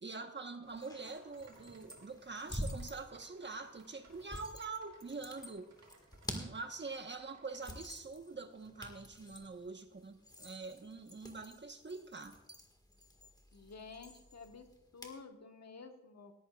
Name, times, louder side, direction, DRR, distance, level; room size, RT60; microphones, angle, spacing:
voice 1, 0.0-5.7 6.3-12.4, right 4 dB, 40° right, 6 dB, 1.2 m, -45 dB
sound 1, 0.6-7.9, right 3 dB, 80° right, 4.9 m, -64 dB
sound 2, 0.7-15.2, equal, 15° left, 1.8 m, -49 dB
voice 2, 13.5-14.7 14.9-16.3, left 4 dB, 60° left, 5 dB, 1.4 m, -51 dB
18.0 x 14.0 x 2.4 m, 0.89 s
wide cardioid pair, 100°, 29 cm